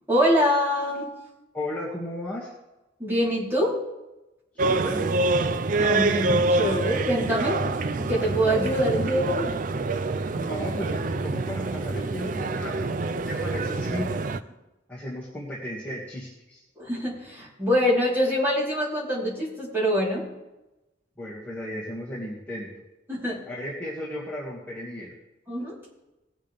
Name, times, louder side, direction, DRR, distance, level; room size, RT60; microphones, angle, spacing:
voice 1, 0.1-1.1 3.0-3.8 5.8-7.6 7.9-9.6 16.8-20.3 23.1-23.4 25.5-25.8, equal, 10° right, -8 dB, 3.8 m, -24 dB
voice 2, 1.5-2.5 4.5-5.0 10.3-14.1 14.9-16.6 21.2-22.7 23.5-25.1, left 1 dB, 10° left, -8 dB, 2.0 m, -35 dB
sound 1, 4.6-14.4, right 3 dB, 45° right, 0.4 m, -26 dB
19.0 x 7.4 x 3.5 m, 1.0 s
head